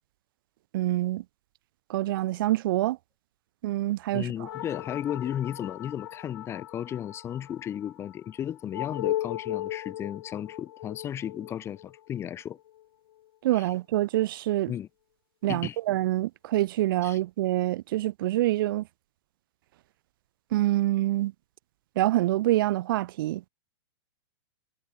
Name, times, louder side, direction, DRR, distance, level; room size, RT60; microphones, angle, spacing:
voice 1, 0.7-1.2 1.9-3.0 3.6-4.5 13.4-14.7 15.4-18.9 20.5-21.3 22.0-23.5, right 16 dB, 55° right, 0.5 m, -26 dB
voice 2, 4.1-12.6 13.5-13.7 14.7-14.9 15.5-15.8 17.0-17.2, left 10 dB, 20° left, 3.0 m, -34 dB
sound 1, 4.5-13.3, left 13 dB, 60° left, 1.8 m, -37 dB
hypercardioid pair, 155°, 14 cm